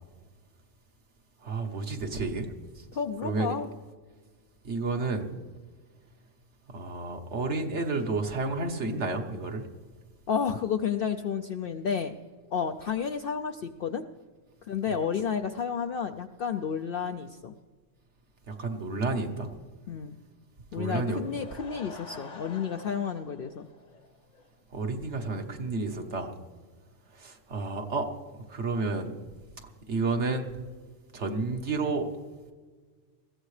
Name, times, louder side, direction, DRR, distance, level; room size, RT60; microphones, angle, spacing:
voice 1, 1.4-2.5 2.7-2.8 3.2-3.5 4.6-5.3 6.7-9.6 14.9-15.0 18.5-19.5 20.7-21.2 24.7-26.3 27.1-28.1 28.5-29.1 29.9-30.5 31.1-32.1, right 3 dB, 65° right, 4 dB, 1.5 m, -31 dB
voice 2, 2.9-3.7 10.3-12.2 12.5-14.0 14.6-17.5 19.9-20.2 20.7-23.7, left 7 dB, 60° left, 6 dB, 0.7 m, -31 dB
Laughter / Crowd, 21.2-24.5 24.8-24.9 25.4-25.5 25.7-25.8, left 3 dB, 40° left, 1.0 m, -48 dB
21.0 x 15.0 x 3.3 m, 1.5 s
omnidirectional pair, 1.3 m